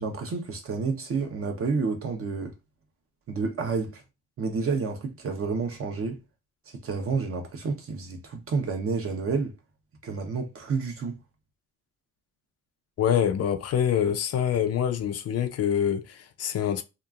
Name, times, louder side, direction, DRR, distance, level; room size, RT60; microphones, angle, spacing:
voice 1, 0.0-2.5 3.3-4.0 4.4-6.2 6.7-9.5 10.0-11.2, right 4 dB, 45° right, 0.9 m, -29 dB
voice 2, 13.0-16.8, left 9 dB, 55° left, 0.5 m, -25 dB
2.8 x 2.4 x 2.4 m
cardioid pair, 90°, 30 cm